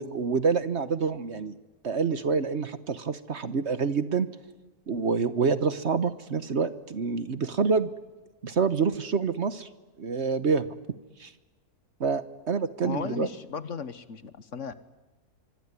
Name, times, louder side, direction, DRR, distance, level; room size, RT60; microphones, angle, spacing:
voice 1, 0.0-1.5 1.8-4.3 4.9-7.9 8.4-9.7 10.0-10.7 11.2-11.3 12.0-13.3, right 5 dB, 50° right, 13 dB, 1.3 m, -27 dB
voice 2, 12.8-14.7, left 5 dB, 55° left, 13 dB, 1.5 m, -35 dB
25.0 x 24.0 x 9.8 m, 1.2 s
omnidirectional pair, 1.6 m